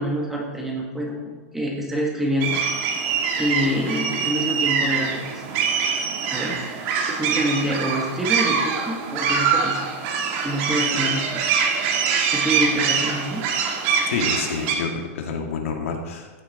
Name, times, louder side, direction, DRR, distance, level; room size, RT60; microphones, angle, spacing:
voice 1, 0.0-2.6 3.4-5.4 6.3-9.9 10.4-11.4 11.7-13.4, equal, 5° right, -1 dB, 1.5 m, -27 dB
sound 1, 2.4-14.7, right 6 dB, 35° right, 1.8 m, -24 dB
voice 2, 14.1-16.3, left 5 dB, 65° left, 3 dB, 2.1 m, -28 dB
14.5 x 9.9 x 4.2 m, 1.4 s
supercardioid pair, 170°, 8 cm